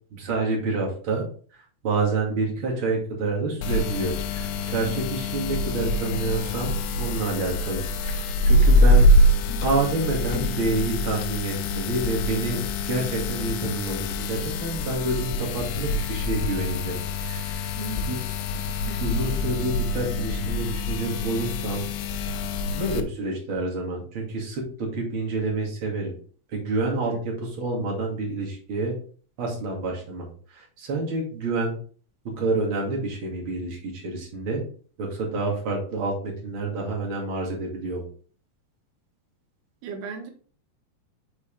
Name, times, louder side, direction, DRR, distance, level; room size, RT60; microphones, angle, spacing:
voice 1, 0.1-1.2 1.8-9.1 9.6-12.6 12.9-17.8 18.1-18.2 19.0-21.9 22.7-26.1 26.5-27.1 27.4-28.9 29.4-31.7 32.2-34.6 35.0-38.0, right 3 dB, 35° right, -1 dB, 2.4 m, -28 dB
sound 1, 3.6-23.0, left 1 dB, 80° left, 3.0 m, -24 dB
voice 2, 4.9-5.2 17.7-18.1 18.5-19.0 27.1-27.2 39.8-40.3, right 4 dB, 70° right, 4 dB, 3.2 m, -38 dB
7.0 x 6.6 x 3.4 m, 0.43 s
omnidirectional pair, 5.0 m